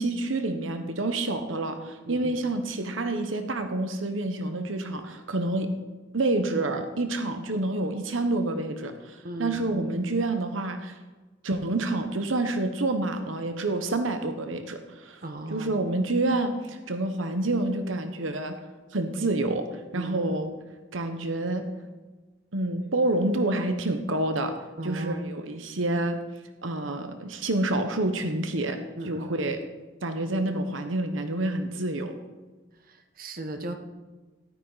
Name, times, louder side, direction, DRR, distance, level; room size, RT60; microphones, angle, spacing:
voice 1, 0.0-5.7 6.1-11.0 11.4-15.2 15.5-18.6 18.9-19.7 19.9-20.5 20.9-21.6 22.5-24.5 24.8-26.2 26.6-28.8 29.0-29.6 30.0-32.1, right 2 dB, 80° right, 7 dB, 1.1 m, -28 dB
voice 2, 2.0-2.4 9.2-9.9 15.2-15.8 19.9-20.3 24.8-25.2 29.0-29.4 32.8-33.7, right 1 dB, 50° right, 6 dB, 1.2 m, -37 dB
14.0 x 12.5 x 4.1 m, 1.2 s
head